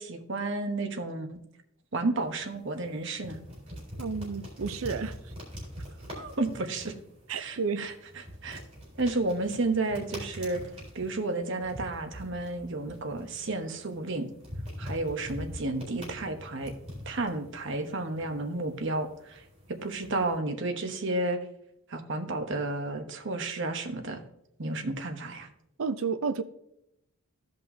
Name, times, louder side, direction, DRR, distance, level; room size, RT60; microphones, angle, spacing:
voice 1, 0.0-1.4 1.9-3.4 6.1-6.9 7.3-7.9 8.4-8.6 9.0-10.6 10.9-14.3 14.8-16.7 17.1-19.4 19.8-21.4 21.9-24.2 24.6-25.5, right 2 dB, 60° right, 1.0 m, -32 dB
sound 1, 2.2-20.4, equal, 30° right, 3.7 m, -44 dB
voice 2, 4.0-5.2 7.3-7.9 25.8-26.4, right 5 dB, 75° right, 0.6 m, -31 dB
15.5 x 5.3 x 2.7 m
head